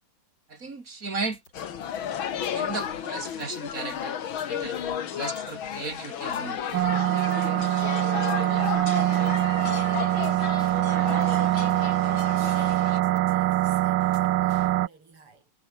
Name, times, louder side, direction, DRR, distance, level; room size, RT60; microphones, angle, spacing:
voice 1, 0.5-1.4 2.5-4.2 4.5-4.8 5.1-6.6, right 3 dB, 40° right, 3.3 m, -35 dB
sound 1, 1.3-14.8, left 2 dB, 50° left, 8.4 m, -52 dB
sound 2, 1.5-13.0, left 9 dB, 70° left, 2.2 m, -33 dB
sound 3, 6.7-14.9, right 15 dB, 75° right, 1.4 m, -24 dB
voice 2, 8.8-10.9 12.3-15.5, right 4 dB, 90° right, 5.4 m, -51 dB
omnidirectional pair, 2.4 m